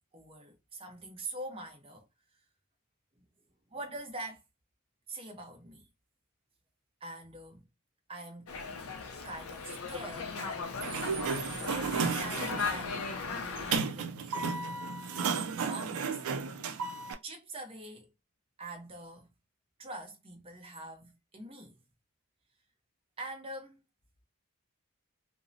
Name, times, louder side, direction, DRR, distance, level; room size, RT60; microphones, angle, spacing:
voice 1, 0.1-2.1 2.3-2.4 3.2-3.3 3.7-4.4 5.1-5.9 7.0-7.7 8.1-8.5 9.2-11.2 11.7-13.0 13.8-14.4 15.1-16.2 17.2-18.1 18.6-19.3 19.8-21.8 23.2-23.8, right 1 dB, 25° right, 0.6 m, -44 dB
Dog, 8.5-13.8, left 5 dB, 75° left, 0.5 m, -37 dB
Sliding door, 10.6-17.1, right 5 dB, 75° right, 0.4 m, -34 dB
2.6 x 2.0 x 2.6 m
head